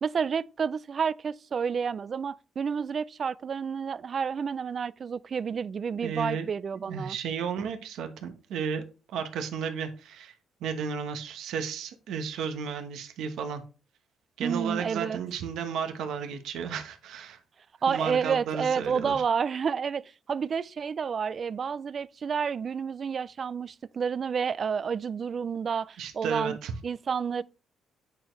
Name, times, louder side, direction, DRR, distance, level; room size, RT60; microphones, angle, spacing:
voice 1, 0.0-7.2 14.4-15.2 17.8-26.6 26.8-27.4, right 6 dB, 45° right, 0.3 m, -30 dB
voice 2, 6.0-6.5 6.7-10.3 10.6-13.6 14.4-17.4 17.9-19.2 26.0-26.7, right 6 dB, 80° right, 1.1 m, -33 dB
8.6 x 4.5 x 3.2 m
cardioid pair, 90°, 0 cm